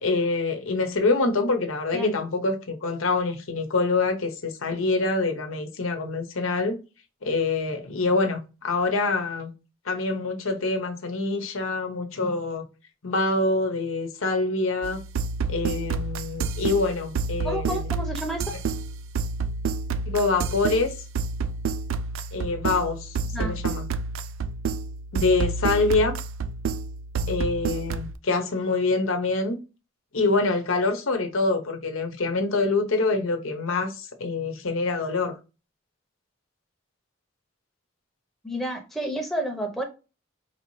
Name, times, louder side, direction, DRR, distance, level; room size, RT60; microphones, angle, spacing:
voice 1, 0.0-6.8 7.2-9.5 9.9-12.6 13.0-15.0 15.5-17.8 20.1-20.9 22.3-23.9 25.1-26.2 27.3-29.6 30.1-35.3, left 3 dB, 85° left, 0.9 m, -25 dB
sound 1, 14.8-28.1, right 4 dB, 80° right, 0.4 m, -29 dB
voice 2, 17.4-18.5 23.3-23.5 38.4-39.8, right 1 dB, ahead, 0.7 m, -30 dB
4.6 x 2.8 x 3.1 m
head